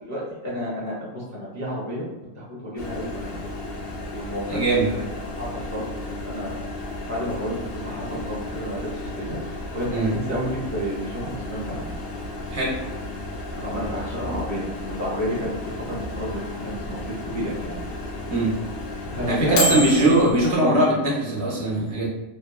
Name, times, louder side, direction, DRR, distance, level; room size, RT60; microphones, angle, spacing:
voice 1, 0.0-2.1 2.3-3.4 4.1-4.6 4.9-11.9 13.5-15.5 15.9-17.8 19.1-20.8, equal, 20° left, -6 dB, 0.4 m, -31 dB
Microwave oven, 2.8-20.5, left 1 dB, 90° left, 1.1 m, -32 dB
voice 2, 4.5-4.9 9.9-10.1 12.5-12.7 14.3-14.4 18.3-18.5 19.3-22.1, right 1 dB, 60° right, -4 dB, 0.9 m, -21 dB
2.9 x 2.1 x 2.3 m, 1.0 s
omnidirectional pair, 1.5 m